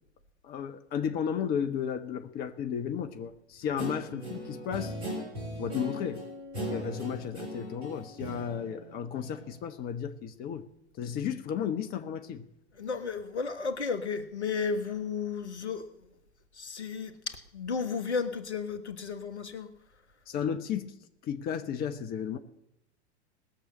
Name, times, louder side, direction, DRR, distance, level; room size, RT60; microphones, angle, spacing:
voice 1, 0.4-4.9 5.6-6.2 6.7-10.7 11.0-12.5 20.3-20.9 21.2-22.4, left 8 dB, 25° left, 1.0 m, -33 dB
Guitar, 3.8-9.6, equal, 75° right, 5.6 m, -39 dB
voice 2, 12.8-15.9 16.5-19.7, left 5 dB, 75° left, 1.5 m, -33 dB
19.5 x 6.7 x 7.6 m
figure-of-eight pair, 95°, 34 cm